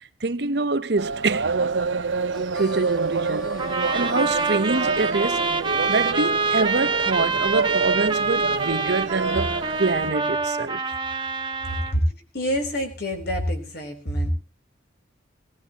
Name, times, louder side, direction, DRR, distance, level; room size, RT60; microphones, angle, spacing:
voice 1, 0.2-1.7 2.5-3.5 3.9-5.5 5.9-10.8, right 3 dB, 60° right, 0.8 m, -25 dB
sound 1, 1.0-10.1, right 4 dB, 90° right, 0.9 m, -27 dB
Harmonica, 2.3-6.6, right 1 dB, ahead, 1.4 m, -40 dB
sound 2, 3.6-12.0, right 4 dB, 25° right, 1.1 m, -26 dB
voice 2, 11.7-12.0 12.3-14.3, equal, 55° left, 3.7 m, -27 dB
18.0 x 18.0 x 2.9 m
head